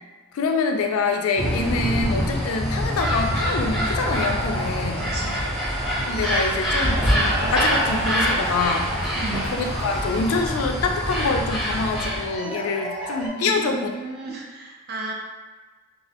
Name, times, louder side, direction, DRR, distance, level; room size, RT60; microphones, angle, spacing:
voice 1, 0.3-5.1 6.1-8.9 9.5-13.9, left 3 dB, 70° left, 4 dB, 0.3 m, -25 dB
sound 1, 1.4-12.3, equal, 5° right, 0.6 m, -25 dB
Cheering / Applause, 2.5-10.2, equal, 30° right, 0.9 m, -31 dB
sound 2, 4.2-13.3, right 1 dB, 85° right, 0.9 m, -36 dB
voice 2, 5.0-5.4 9.2-9.5 13.4-15.1, right 2 dB, 45° right, -1 dB, 0.4 m, -34 dB
2.3 x 2.1 x 2.7 m, 1.3 s
head